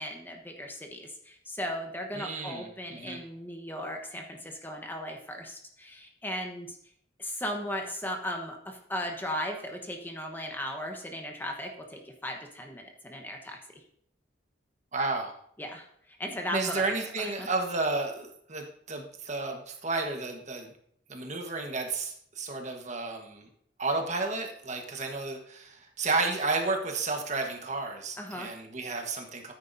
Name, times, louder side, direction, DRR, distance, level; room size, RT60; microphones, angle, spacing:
voice 1, 0.0-6.8 7.2-13.8 15.6-17.5 28.2-28.5, equal, 10° left, 3 dB, 1.1 m, -37 dB
voice 2, 2.1-3.2 14.9-15.3 16.5-20.7 21.1-23.5 23.8-29.5, right 3 dB, 40° right, 3 dB, 1.3 m, -32 dB
13.5 x 9.5 x 2.7 m, 0.66 s
head